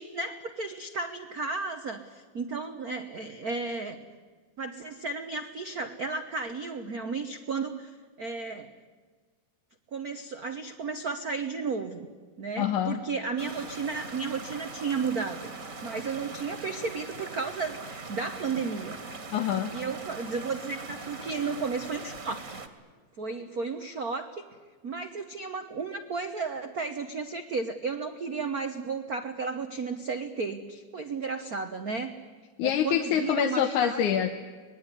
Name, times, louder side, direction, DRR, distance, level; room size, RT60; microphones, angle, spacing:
voice 1, 0.0-4.0 4.6-8.7 9.9-12.1 12.4-15.5 15.8-19.0 19.7-22.6 23.2-24.4 24.8-32.2 32.6-34.0, right 4 dB, 75° right, 7 dB, 0.8 m, -33 dB
voice 2, 12.6-13.0 19.3-19.7 32.6-34.3, left 9 dB, 90° left, 6 dB, 2.6 m, -26 dB
sound 1, 13.4-22.7, right 4 dB, 30° right, 1.9 m, -41 dB
25.5 x 19.5 x 9.9 m, 1.5 s
omnidirectional pair, 3.4 m